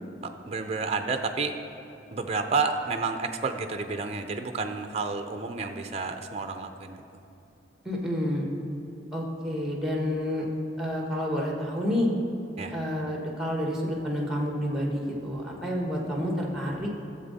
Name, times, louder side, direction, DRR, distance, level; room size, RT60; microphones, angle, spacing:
voice 1, 0.2-1.6 2.1-7.0 12.6-12.7, right 4 dB, 35° right, 6 dB, 0.5 m, -30 dB
voice 2, 7.8-8.5 9.1-10.5 10.8-12.1 12.7-16.9, equal, 5° right, -1 dB, 1.4 m, -29 dB
13.0 x 7.4 x 4.1 m, 2.7 s
head